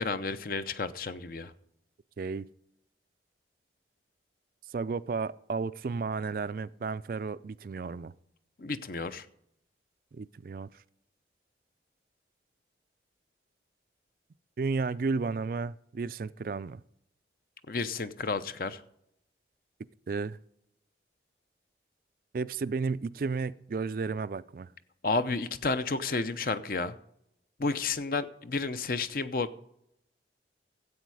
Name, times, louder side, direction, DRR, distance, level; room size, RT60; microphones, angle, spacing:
voice 1, 0.0-1.5 8.6-9.3 17.7-18.8 25.0-27.0 27.6-29.6, left 3 dB, 50° left, 0.6 m, -31 dB
voice 2, 4.7-8.1 10.1-10.7 14.6-16.8 20.1-20.4 22.3-24.7, right 4 dB, 50° right, 0.3 m, -33 dB
13.0 x 8.3 x 4.8 m
head